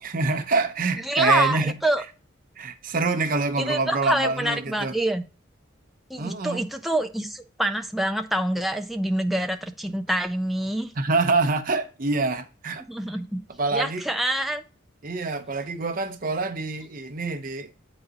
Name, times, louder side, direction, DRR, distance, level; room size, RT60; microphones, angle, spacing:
voice 1, 0.0-1.8 2.6-5.0 6.2-6.6 11.0-12.8 13.6-14.0 15.0-17.7, right 3 dB, 45° right, 0.7 m, -26 dB
voice 2, 1.0-2.0 3.6-5.2 6.1-10.9 12.9-13.4 13.7-14.6, right 1 dB, ahead, 0.4 m, -26 dB
7.9 x 4.0 x 3.9 m
head